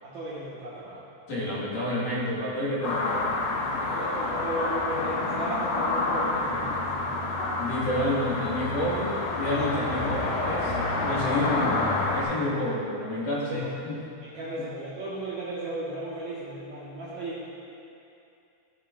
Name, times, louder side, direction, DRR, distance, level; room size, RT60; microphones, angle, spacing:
voice 1, 0.0-1.0 3.8-7.3 13.5-13.7 14.2-17.5, right 1 dB, 65° right, -10 dB, 2.1 m, -35 dB
voice 2, 1.3-3.7 7.6-10.7 11.0-14.0, left 1 dB, 60° left, -8 dB, 2.8 m, -29 dB
sound 1, 2.8-12.2, left 2 dB, 80° left, 3.2 m, -28 dB
14.5 x 6.4 x 2.4 m, 2.7 s
omnidirectional pair, 4.5 m